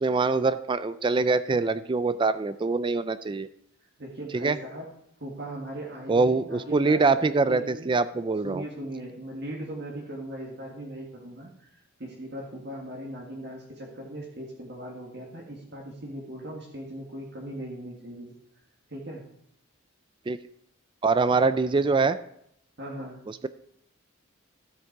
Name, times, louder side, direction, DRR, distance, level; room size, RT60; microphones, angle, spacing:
voice 1, 0.0-3.5 4.3-4.6 6.1-8.6 20.3-20.4 21.0-22.2 23.3-23.5, right 3 dB, 25° right, 13 dB, 0.3 m, -24 dB
voice 2, 4.0-4.9 5.2-7.9 8.4-11.7 12.0-18.3 18.9-19.2 22.8-23.2, right 1 dB, 55° right, -2 dB, 1.9 m, -39 dB
13.5 x 8.2 x 4.7 m, 0.74 s
head